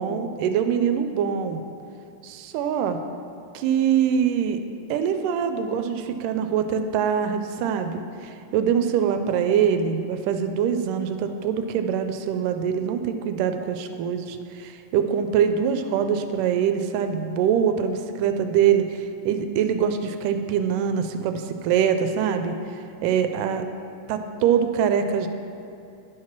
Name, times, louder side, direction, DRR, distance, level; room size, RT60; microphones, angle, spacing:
voice 1, 0.0-1.6 2.2-3.0 3.5-4.6 4.9-22.6 23.0-23.6 24.1-25.3, right 8 dB, 85° right, 8 dB, 2.1 m, -24 dB
11.0 x 4.8 x 5.9 m, 2.6 s
omnidirectional pair, 3.8 m